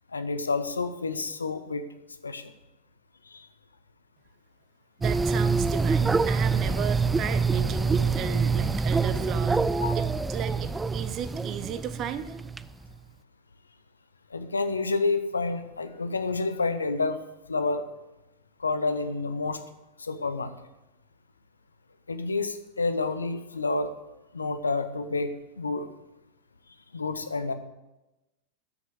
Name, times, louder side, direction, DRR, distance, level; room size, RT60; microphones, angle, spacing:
voice 1, 0.1-1.8 2.2-2.5 3.3-3.5 9.8-10.0 14.3-17.2 17.5-17.8 18.6-19.6 20.0-20.5 22.1-23.9 24.3-25.9 26.9-27.5, left 3 dB, 75° left, 10 dB, 0.8 m, -29 dB
sound 1, 5.0-12.6, right 4 dB, 10° right, 0.3 m, -26 dB
voice 2, 5.0-12.4, right 9 dB, 35° right, 12 dB, 0.8 m, -35 dB
11.5 x 6.4 x 7.8 m, 1.0 s
figure-of-eight pair, 90°, 0 cm